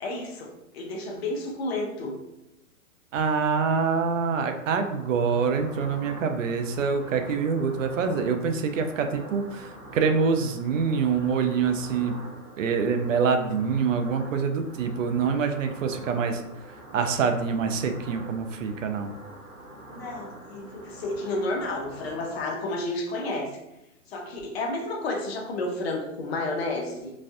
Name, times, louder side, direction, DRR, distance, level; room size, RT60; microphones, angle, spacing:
voice 1, 0.0-2.1 19.9-23.5 24.1-27.1, left 2 dB, 45° left, 1 dB, 0.7 m, -31 dB
voice 2, 3.1-12.1 12.6-16.4 16.9-19.1, right 5 dB, 60° right, 6 dB, 0.5 m, -25 dB
sound 1, 3.8-22.4, right 1 dB, 25° right, 0.8 m, -44 dB
4.1 x 2.3 x 2.5 m, 0.92 s
hypercardioid pair, 140°, 43 cm